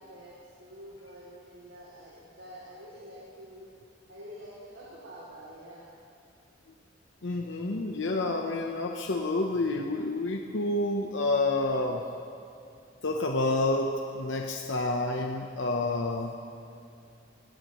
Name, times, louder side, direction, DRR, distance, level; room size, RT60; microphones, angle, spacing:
voice 1, 0.0-3.7 4.1-5.9, equal, 85° right, -6 dB, 3.0 m, -47 dB
voice 2, 7.2-12.0 13.0-16.4, left 2 dB, 90° left, 2 dB, 0.9 m, -29 dB
19.5 x 18.5 x 3.1 m, 2.5 s
head